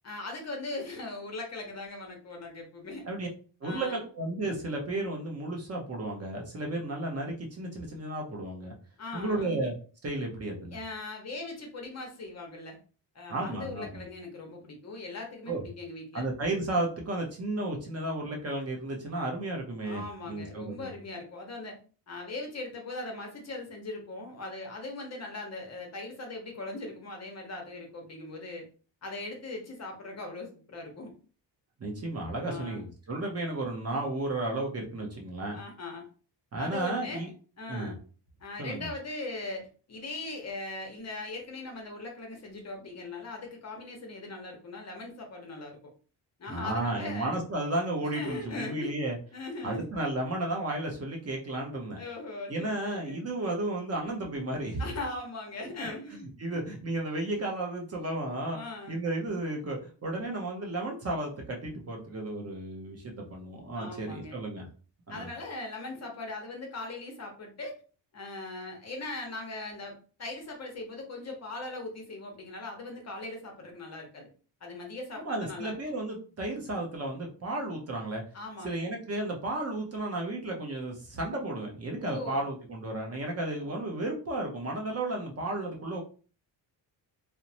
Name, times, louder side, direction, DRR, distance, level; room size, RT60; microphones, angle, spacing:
voice 1, 0.0-3.1 3.6-4.0 9.0-9.5 10.7-12.8 13.1-16.2 19.8-21.8 22.1-28.7 29.0-31.1 32.4-32.9 35.5-36.1 36.6-37.3 37.6-38.0 38.4-45.8 46.4-47.4 48.1-49.0 49.3-49.9 52.0-53.2 54.8-56.6 58.5-59.0 63.7-64.4 65.1-67.8 68.1-74.3 74.6-75.8 78.3-78.9 82.0-82.5, left 2 dB, 35° left, 2 dB, 0.7 m, -40 dB
voice 2, 3.6-8.7 9.1-9.7 10.0-10.8 13.3-14.0 15.5-15.6 16.1-20.9 31.8-35.6 36.5-37.3 37.7-37.9 38.6-38.9 46.5-49.2 49.6-52.0 52.5-54.8 56.1-58.6 58.9-64.7 65.1-65.3 75.2-78.2 78.6-86.0, right 2 dB, 35° right, 1 dB, 0.6 m, -33 dB
2.9 x 2.0 x 2.7 m, 0.38 s
wide cardioid pair, 155°, 44 cm